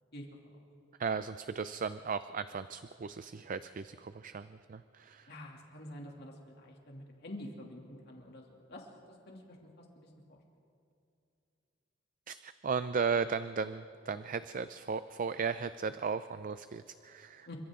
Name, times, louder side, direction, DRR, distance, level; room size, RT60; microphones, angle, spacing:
voice 1, 1.0-5.3 12.3-17.5, right 5 dB, 45° right, 12 dB, 0.5 m, -36 dB
voice 2, 5.3-10.4 17.5-17.6, left 1 dB, 55° left, 0 dB, 2.6 m, -48 dB
29.0 x 25.0 x 3.7 m, 2.6 s
head